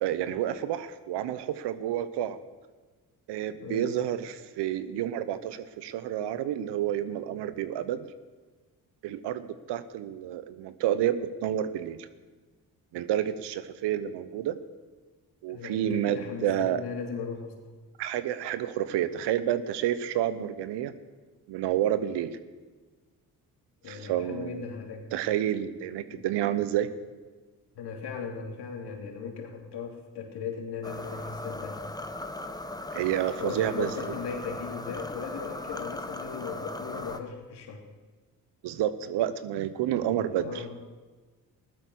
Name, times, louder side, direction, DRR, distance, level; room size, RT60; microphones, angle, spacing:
voice 1, 0.0-2.4 3.3-8.1 9.0-12.1 12.9-14.6 15.4-16.8 18.0-20.9 21.5-22.4 23.9-24.6 25.1-26.9 32.9-34.2 38.6-40.6, right 11 dB, 80° right, 14 dB, 1.0 m, -29 dB
voice 2, 3.6-4.0 15.5-17.6 23.8-25.1 26.1-26.3 27.7-31.8 33.4-37.8 40.1-40.7, left 6 dB, 70° left, 3 dB, 2.9 m, -38 dB
sound 1, 30.8-37.2, left 2 dB, 10° left, 1.3 m, -38 dB
15.0 x 12.0 x 6.3 m, 1.3 s
supercardioid pair, 60°, 41 cm